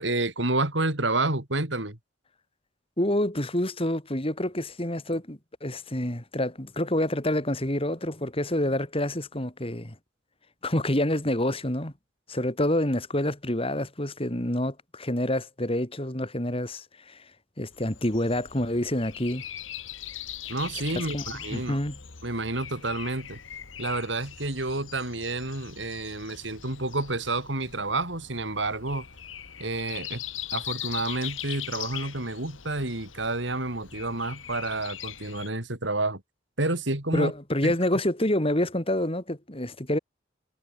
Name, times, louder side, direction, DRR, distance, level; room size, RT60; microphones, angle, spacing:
voice 1, 0.0-2.0 20.5-21.8 22.2-23.4 23.8-29.1 29.6-30.2 30.5-36.2 36.6-37.3 37.6-38.0, right 2 dB, 70° right, 4.0 m, -29 dB
voice 2, 3.0-10.0 10.6-11.9 12.3-17.3 17.6-19.4 20.9-21.2 21.5-22.0 37.1-40.0, left 1 dB, 30° left, 3.6 m, -27 dB
Breathing, 17.7-35.5, left 11 dB, 90° left, 2.3 m, -41 dB
head